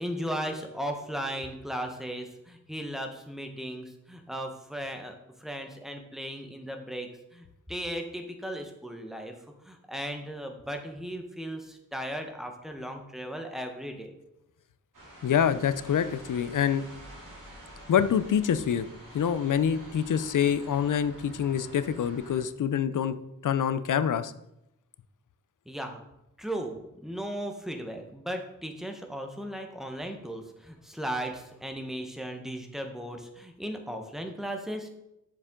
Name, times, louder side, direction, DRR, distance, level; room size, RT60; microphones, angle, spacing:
voice 1, 0.0-9.3 9.6-14.1 25.7-26.0 26.4-34.9, equal, ahead, 4 dB, 1.0 m, -36 dB
sound 1, 14.9-22.4, right 1 dB, 70° right, 2.7 m, -48 dB
voice 2, 15.2-16.8 17.9-18.9 19.1-23.1 23.4-24.3, left 8 dB, 75° left, 12 dB, 0.5 m, -26 dB
7.1 x 6.8 x 3.7 m, 0.86 s
wide cardioid pair, 90°, 32 cm